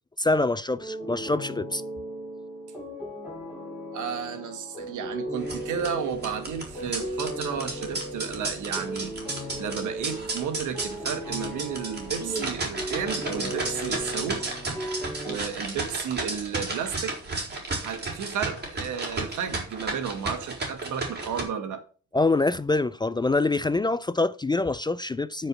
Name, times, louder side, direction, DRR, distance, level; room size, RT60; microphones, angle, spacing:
voice 1, 0.2-1.8 22.1-25.5, left 2 dB, 15° left, 0.4 m, -25 dB
sound 1, 0.8-15.4, equal, 5° right, 6.9 m, -37 dB
voice 2, 3.9-17.1 17.8-21.8, right 7 dB, 80° right, 2.1 m, -33 dB
sound 2, 5.4-21.4, right 3 dB, 35° right, 4.9 m, -33 dB
9.4 x 5.3 x 7.7 m
cardioid pair, 90°, 30 cm